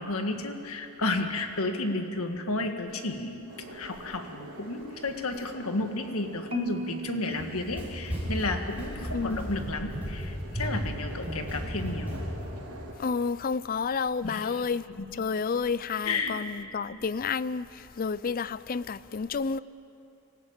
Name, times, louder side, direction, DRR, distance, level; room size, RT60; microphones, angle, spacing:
voice 1, 0.0-12.1 14.2-14.6 16.0-16.3, left 2 dB, 75° left, 1.8 m, -32 dB
sound 1, 3.5-12.9, right 1 dB, 80° right, 5.0 m, -47 dB
Marimba xylophone, 6.5-8.7, right 2 dB, 25° right, 1.2 m, -39 dB
Run, 7.3-12.5, equal, 5° right, 5.9 m, -35 dB
voice 2, 9.1-9.6 13.0-14.9 15.1-19.6, left 5 dB, 40° left, 0.4 m, -30 dB
25.0 x 15.0 x 8.9 m
head